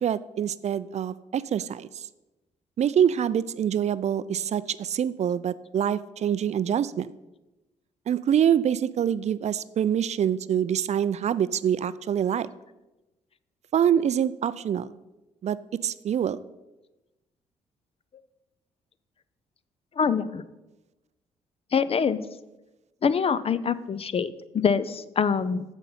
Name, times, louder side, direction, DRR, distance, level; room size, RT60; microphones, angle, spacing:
voice 1, 0.0-2.1 2.8-7.1 8.1-12.5 13.7-14.9 15.4-15.6 15.8-16.4, right 9 dB, 45° right, 16 dB, 0.4 m, -25 dB
voice 2, 20.0-20.4 21.7-22.2 23.0-25.6, left 6 dB, 35° left, 15 dB, 0.5 m, -25 dB
7.0 x 6.6 x 5.5 m, 1.0 s
hypercardioid pair, 50°, 16 cm